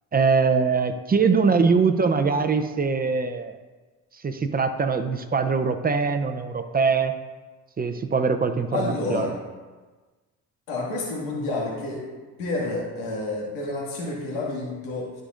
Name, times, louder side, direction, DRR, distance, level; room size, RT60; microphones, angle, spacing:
voice 1, 0.1-3.6 4.1-7.2 7.8-9.3, right 5 dB, 25° right, 8 dB, 0.6 m, -22 dB
voice 2, 8.7-9.3 10.7-12.0 12.4-15.2, left 2 dB, 90° left, -3 dB, 2.0 m, -29 dB
12.0 x 5.1 x 2.5 m, 1.3 s
supercardioid pair, 70°, 36 cm